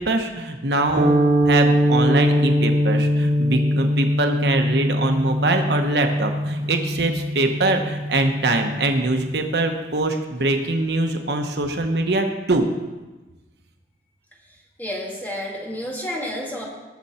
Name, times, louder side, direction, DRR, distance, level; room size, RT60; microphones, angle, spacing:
voice 1, 0.0-12.7, right 2 dB, 70° right, 5 dB, 1.1 m, -23 dB
sound 1, 1.0-9.3, equal, 40° right, 0.9 m, -22 dB
voice 2, 14.8-16.6, left 1 dB, 10° left, -3 dB, 2.1 m, -30 dB
19.0 x 6.8 x 4.3 m, 1.2 s
head